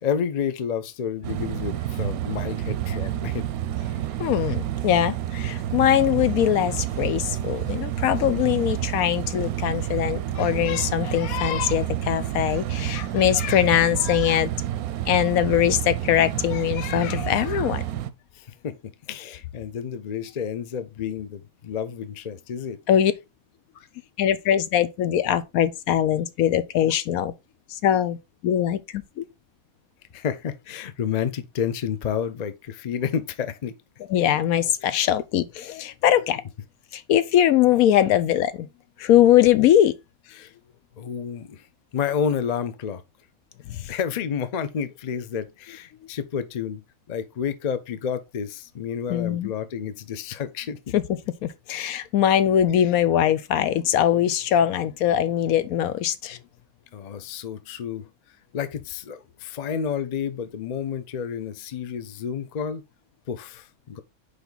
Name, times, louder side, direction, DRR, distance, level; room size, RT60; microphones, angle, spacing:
voice 1, 0.0-3.5 18.4-22.8 30.1-33.7 34.8-35.1 40.3-40.5 41.0-41.6 41.9-43.0 43.9-50.9 56.9-58.1 58.5-62.8 63.3-64.0, left 7 dB, 50° left, 0.5 m, -30 dB
sound 1, 1.2-18.1, right 12 dB, 90° right, 1.1 m, -29 dB
voice 2, 4.2-14.5 15.1-17.8 22.9-23.1 24.2-27.3 27.8-28.2 28.4-29.2 34.1-36.4 36.9-38.7 39.0-39.9 43.7-43.9 49.1-49.5 50.9-51.0 51.4-56.4, left 11 dB, 80° left, 1.1 m, -21 dB
5.1 x 4.8 x 3.9 m
omnidirectional pair, 1.5 m